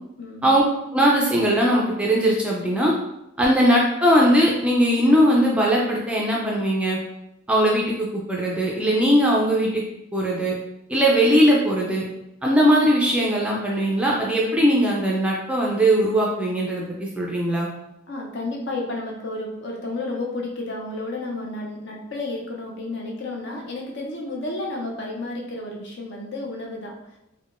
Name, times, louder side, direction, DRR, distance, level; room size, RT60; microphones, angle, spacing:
voice 1, 0.2-0.5 18.1-27.2, left 2 dB, 55° left, -1 dB, 0.6 m, -31 dB
voice 2, 0.9-2.9 3.4-7.0 7.5-9.8 10.1-10.5 10.9-12.1 12.4-17.7, equal, 5° right, -3 dB, 0.3 m, -20 dB
3.5 x 2.1 x 2.4 m, 0.85 s
head